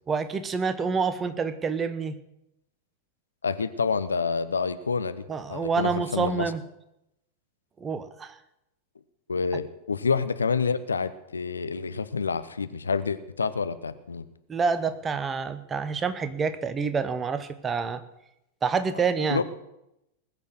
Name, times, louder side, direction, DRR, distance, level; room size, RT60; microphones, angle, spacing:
voice 1, 0.1-2.2 5.3-6.6 7.8-8.4 14.5-18.0 18.6-19.4, right 5 dB, 20° right, 12 dB, 1.1 m, -27 dB
voice 2, 3.4-6.5 9.3-14.3 19.3-19.4, left 5 dB, 75° left, 12 dB, 0.8 m, -28 dB
20.0 x 6.7 x 7.9 m, 0.84 s
figure-of-eight pair, 90°, 0 cm